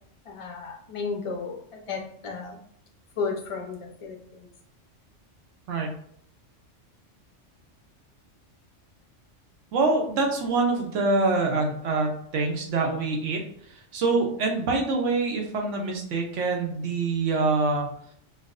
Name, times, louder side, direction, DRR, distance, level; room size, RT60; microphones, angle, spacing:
voice 1, 0.3-2.6 3.2-4.5, left 4 dB, 50° left, 0 dB, 0.4 m, -33 dB
voice 2, 9.7-13.4 13.7-17.9, right 3 dB, 75° right, 1 dB, 1.0 m, -25 dB
4.4 x 2.0 x 2.4 m, 0.66 s
omnidirectional pair, 1.3 m